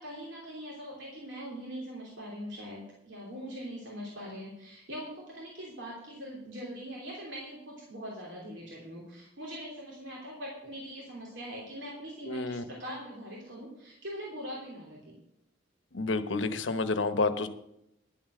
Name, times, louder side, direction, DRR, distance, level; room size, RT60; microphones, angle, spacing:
voice 1, 0.0-15.1, equal, 75° right, -4 dB, 3.1 m, -42 dB
voice 2, 12.3-12.6 15.9-17.5, left 3 dB, 85° left, 10 dB, 0.9 m, -29 dB
11.0 x 7.5 x 6.4 m, 0.81 s
head